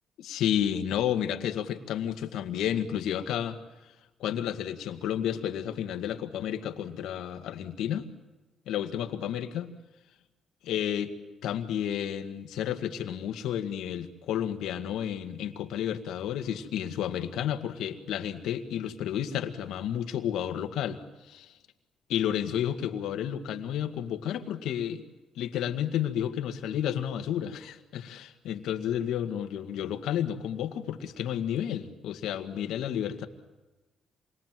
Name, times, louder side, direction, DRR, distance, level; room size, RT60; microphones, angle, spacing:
voice 1, 0.2-3.6 4.2-8.1 8.7-9.8 10.6-11.1 11.4-21.6 22.1-25.0 25.4-33.3, left 10 dB, 85° left, 7 dB, 1.9 m, -31 dB
27.5 x 22.0 x 7.7 m, 1.1 s
cardioid pair, 90°, 0 cm